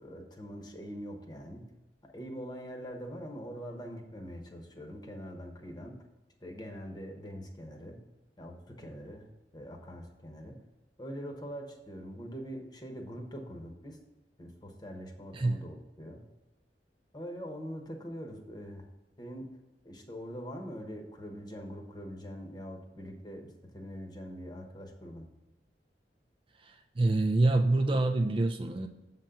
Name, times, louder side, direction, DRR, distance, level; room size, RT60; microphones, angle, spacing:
voice 1, 0.0-1.7 2.0-6.0 6.4-8.0 8.4-9.3 9.5-10.6 11.0-14.0 14.4-16.2 17.1-18.8 19.2-19.6 19.8-25.3, equal, 25° left, 3 dB, 1.0 m, -43 dB
voice 2, 26.6-28.9, right 2 dB, 30° right, 4 dB, 0.4 m, -26 dB
7.3 x 3.9 x 5.7 m, 1.0 s
head